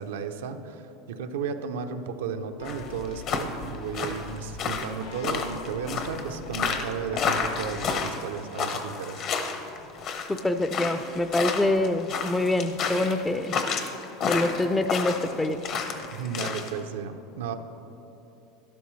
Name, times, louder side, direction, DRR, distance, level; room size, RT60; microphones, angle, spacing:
voice 1, 0.0-9.2 16.1-17.5, right 6 dB, 90° right, 6 dB, 0.7 m, -34 dB
sound 1, 2.6-8.1, left 5 dB, 80° left, 0.7 m, -43 dB
sound 2, 2.7-16.7, left 5 dB, 45° left, 1.0 m, -30 dB
voice 2, 10.3-13.5 14.3-15.6, left 2 dB, 10° left, 10 dB, 0.4 m, -25 dB
12.0 x 11.5 x 3.2 m, 3.0 s
supercardioid pair, 125°, 0 cm